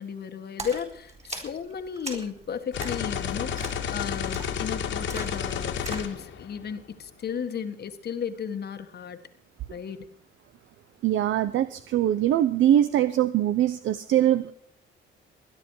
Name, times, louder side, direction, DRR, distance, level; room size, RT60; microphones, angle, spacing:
voice 1, 0.0-9.2 9.7-10.1, left 7 dB, 55° left, 8 dB, 1.5 m, -34 dB
Splash splatter, 0.6-6.1, right 2 dB, 35° right, 4.3 m, -41 dB
sound 1, 2.7-6.9, left 8 dB, 75° left, 2.1 m, -31 dB
voice 2, 11.0-14.5, right 11 dB, 75° right, 13 dB, 0.7 m, -22 dB
20.5 x 10.5 x 4.8 m, 0.62 s
cardioid pair, 90°, 20 cm